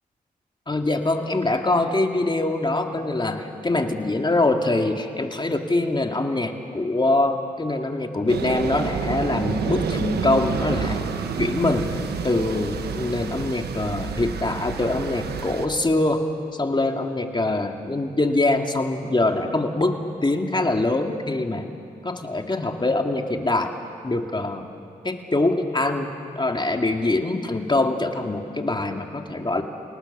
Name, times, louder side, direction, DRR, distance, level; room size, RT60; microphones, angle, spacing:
voice 1, 0.7-11.0 11.4-11.9 12.2-16.2 16.5-21.6 22.0-23.7 24.0-24.7 25.0-29.6, left 2 dB, 30° left, 3 dB, 2.6 m, -24 dB
sound 1, 8.3-15.7, right 6 dB, 90° right, 1.3 m, -29 dB
29.5 x 19.0 x 6.9 m, 2.5 s
supercardioid pair, 45°, 16 cm